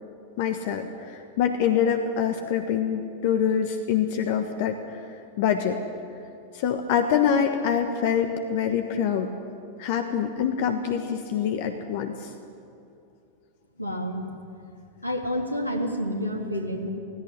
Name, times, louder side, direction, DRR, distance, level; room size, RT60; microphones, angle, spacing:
voice 1, 0.4-4.8 5.4-5.8 6.5-9.3 9.8-12.3, left 8 dB, 50° left, 6 dB, 1.4 m, -25 dB
voice 2, 13.8-14.3 15.0-16.9, equal, 85° left, 3 dB, 2.5 m, -29 dB
17.0 x 17.0 x 9.8 m, 2.6 s
figure-of-eight pair, 90°, 0 cm